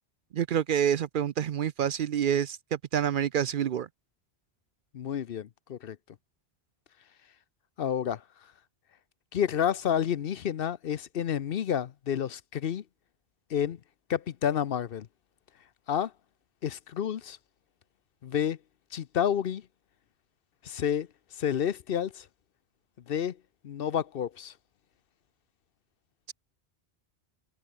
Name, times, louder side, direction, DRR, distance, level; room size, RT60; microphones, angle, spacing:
voice 1, 0.3-3.9, right 9 dB, 60° right, 0.7 m, -27 dB
voice 2, 4.9-6.0 7.8-8.2 9.3-12.8 13.5-13.8 14.1-15.1 15.9-16.1 16.6-17.4 18.2-18.6 18.9-19.6 20.6-21.1 21.4-22.3 23.1-23.4 23.6-24.5, left 9 dB, 65° left, 0.9 m, -29 dB
omnidirectional pair, 1.1 m